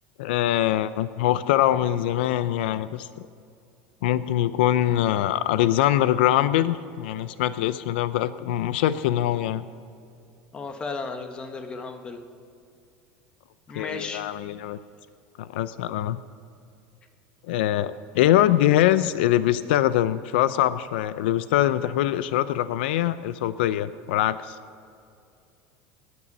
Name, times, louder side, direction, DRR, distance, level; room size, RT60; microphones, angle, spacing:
voice 1, 0.2-3.1 4.0-9.6 13.7-14.8 15.4-16.2 17.5-24.6, left 13 dB, 85° left, 14 dB, 0.5 m, -23 dB
voice 2, 10.5-12.2 13.7-14.2, left 4 dB, 20° left, 6 dB, 1.1 m, -34 dB
18.5 x 9.7 x 5.4 m, 2.5 s
supercardioid pair, 165°, 5 cm